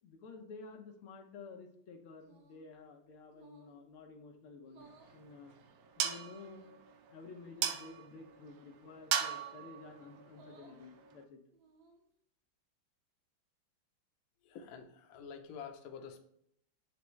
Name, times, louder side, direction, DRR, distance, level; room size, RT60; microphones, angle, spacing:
voice 1, 0.0-5.5 6.0-6.7 7.1-11.4, left 4 dB, 90° left, 2 dB, 1.9 m, -52 dB
sound 1, 2.2-2.7 3.3-3.8 4.6-5.2 6.1-6.7 7.5-7.9 9.2-9.7 10.3-10.8 11.5-12.1, right 2 dB, 55° right, 1.5 m, -62 dB
sound 2, 4.8-11.2, right 9 dB, 90° right, 0.8 m, -40 dB
voice 2, 14.4-16.2, left 7 dB, 60° left, 4 dB, 1.0 m, -48 dB
8.9 x 3.5 x 3.1 m, 0.72 s
omnidirectional pair, 2.3 m